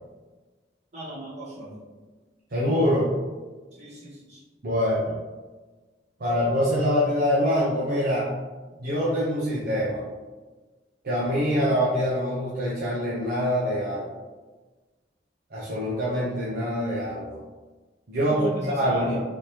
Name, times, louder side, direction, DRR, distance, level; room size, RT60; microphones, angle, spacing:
voice 1, 0.9-1.8 3.7-4.4 18.3-19.2, right 1 dB, 40° right, -8 dB, 1.3 m, -37 dB
voice 2, 2.5-3.1 4.6-5.1 6.2-8.3 8.8-10.0 11.0-14.1 15.5-17.4 18.1-19.1, equal, 55° right, -7 dB, 0.7 m, -24 dB
3.5 x 2.8 x 3.1 m, 1.3 s
head